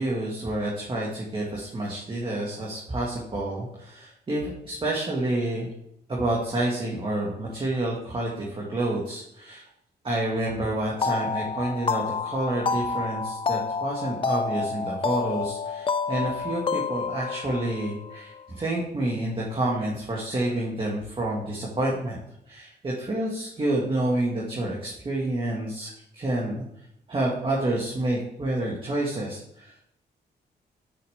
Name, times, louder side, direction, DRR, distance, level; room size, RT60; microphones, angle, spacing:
voice 1, 0.0-5.7 6.1-9.6 10.0-22.2 22.5-26.6 27.1-29.7, right 1 dB, 30° right, -4 dB, 2.2 m, -29 dB
sound 1, 11.0-18.5, left 5 dB, 30° left, 0.5 m, -29 dB
7.0 x 5.7 x 7.1 m, 0.76 s
cardioid pair, 90°, 18 cm